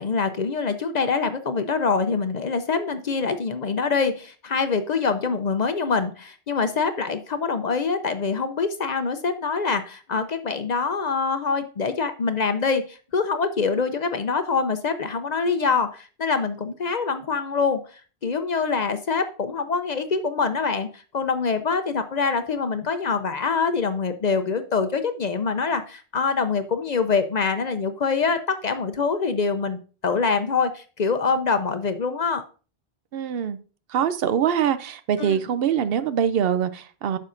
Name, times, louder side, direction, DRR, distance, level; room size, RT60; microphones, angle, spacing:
voice 1, 0.0-32.4 35.2-35.4, left 5 dB, 50° left, 9 dB, 0.6 m, -25 dB
voice 2, 33.1-33.6 33.9-37.2, right 8 dB, 70° right, 13 dB, 0.8 m, -23 dB
9.6 x 6.4 x 2.5 m, 0.36 s
omnidirectional pair, 1.0 m